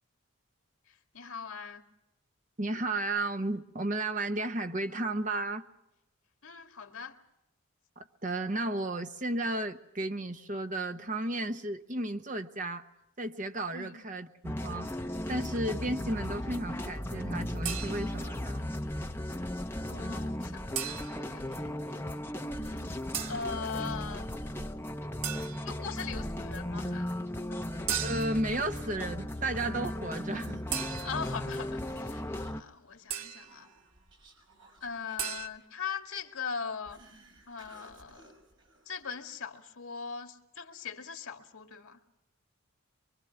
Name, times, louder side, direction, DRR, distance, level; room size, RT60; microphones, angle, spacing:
voice 1, 1.1-1.8 6.4-7.1 13.7-14.0 19.9-22.2 22.6-22.9 23.3-24.3 25.7-27.1 27.5-27.6 31.0-33.7 34.8-37.0 37.5-38.3 38.9-42.0, left 6 dB, 80° left, 5 dB, 2.1 m, -40 dB
voice 2, 2.6-5.6 8.0-12.9 13.2-18.7 28.0-30.6, right 2 dB, 35° right, 7 dB, 1.1 m, -33 dB
sound 1, 14.4-32.6, left 1 dB, 10° left, 0.9 m, -36 dB
sound 2, 17.6-18.3 20.7-21.4 23.1-23.5 25.2-25.8 27.9-28.5 30.7-31.4 33.1-33.6 35.2-35.5, right 9 dB, 85° right, 1.3 m, -36 dB
Human voice, 27.4-39.4, right 2 dB, 60° right, 6.5 m, -59 dB
25.0 x 24.0 x 5.9 m, 0.90 s
head